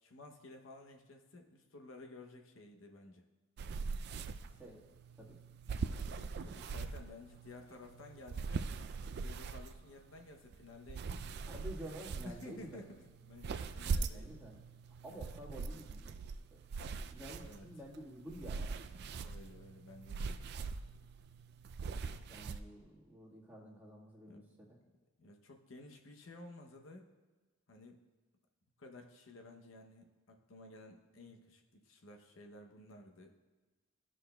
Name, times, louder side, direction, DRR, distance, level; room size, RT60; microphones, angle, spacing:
voice 1, 0.0-3.2 6.2-8.7 9.2-11.1 12.2-14.4 17.4-17.7 19.2-20.5 24.3-24.4 25.2-27.1 27.7-28.0 28.8-33.3, left 2 dB, 70° left, 3 dB, 0.7 m, -54 dB
sound 1, 3.6-22.6, right 4 dB, 55° right, 0.3 m, -42 dB
voice 2, 11.4-12.8 14.1-14.6 15.0-16.1 16.5-19.0 22.3-24.8, equal, 10° right, -5 dB, 1.5 m, -50 dB
15.0 x 6.2 x 2.2 m, 1.3 s
head